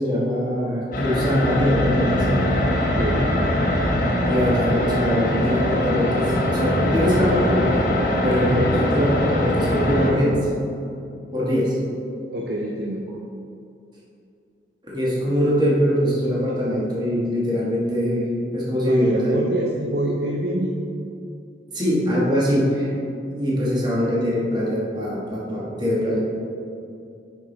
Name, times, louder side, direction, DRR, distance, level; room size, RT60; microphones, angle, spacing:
voice 1, 0.0-2.4 4.3-7.8 8.2-10.4 11.3-11.8 14.8-19.4 21.7-22.9 23.3-26.2, equal, 25° right, -6 dB, 1.5 m, -22 dB
sound 1, 0.9-10.1, left 1 dB, 50° left, 1.0 m, -22 dB
voice 2, 2.8-3.3 8.5-8.8 12.3-13.0 18.8-20.8, right 1 dB, 65° right, -1 dB, 0.6 m, -26 dB
6.8 x 5.9 x 4.0 m, 2.6 s
head